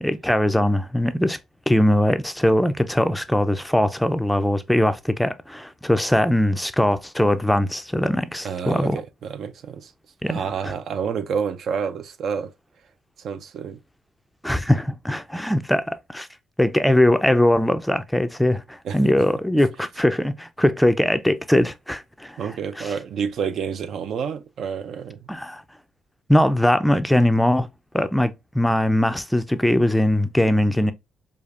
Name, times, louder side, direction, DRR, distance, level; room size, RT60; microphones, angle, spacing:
voice 1, 0.0-1.4 1.7-9.0 10.2-10.5 14.4-16.3 16.6-22.4 22.8-22.9 25.3-25.6 26.3-27.7 27.9-30.9, left 1 dB, 5° left, 0.4 m, -21 dB
voice 2, 8.4-9.9 10.3-12.5 13.2-13.8 18.8-19.0 22.4-25.3, right 7 dB, 65° right, 0.4 m, -29 dB
4.9 x 2.3 x 2.4 m
cardioid pair, 90°, 0 cm